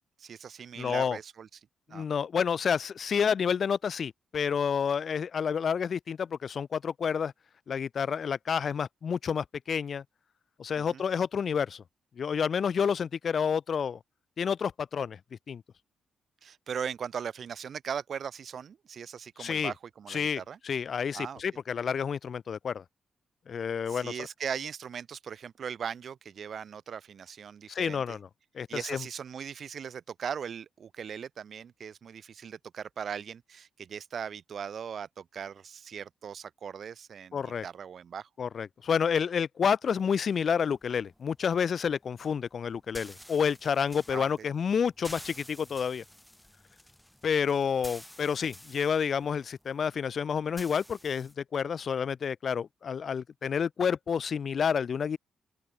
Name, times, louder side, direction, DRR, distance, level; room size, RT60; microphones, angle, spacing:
voice 1, 0.2-1.5 1.9-2.0 10.8-11.0 16.4-20.6 21.1-21.4 23.9-28.2 28.7-38.3 44.1-44.5, right 7 dB, 60° right, 1.6 m, -39 dB
voice 2, 0.8-1.2 1.9-7.3 7.7-10.0 10.6-11.8 12.2-14.0 14.4-15.2 15.5-15.6 19.4-19.7 20.1-22.8 23.5-24.3 27.7-28.3 28.5-29.0 37.3-37.7 38.4-46.0 47.2-55.2, left 7 dB, 55° left, 0.5 m, -29 dB
sound 1, 39.9-51.3, equal, 5° left, 3.4 m, -51 dB
open air
cardioid pair, 90°, 0 cm